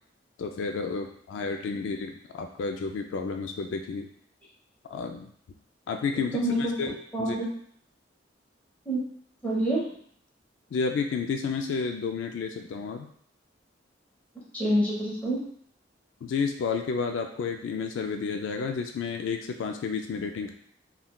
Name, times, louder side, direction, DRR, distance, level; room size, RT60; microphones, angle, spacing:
voice 1, 0.4-4.1 4.9-5.3 5.9-7.4 10.7-13.1 16.2-20.5, left 5 dB, 85° left, 5 dB, 0.3 m, -31 dB
voice 2, 6.3-6.7 7.1-7.5 8.9-9.0 9.4-9.8 14.5-15.4, right 1 dB, 10° left, -6 dB, 0.9 m, -26 dB
3.5 x 2.3 x 2.2 m, 0.62 s
head